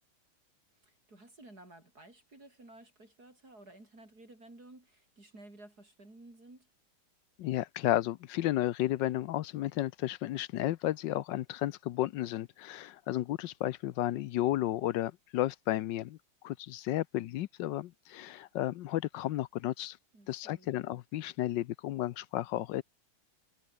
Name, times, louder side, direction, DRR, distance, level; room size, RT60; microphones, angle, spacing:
voice 1, 0.8-6.7 20.1-20.7, right 2 dB, 45° right, 7.1 m, -54 dB
voice 2, 7.4-16.2 16.4-20.0 20.3-22.8, left 14 dB, 70° left, 1.2 m, -33 dB
omnidirectional pair, 2.3 m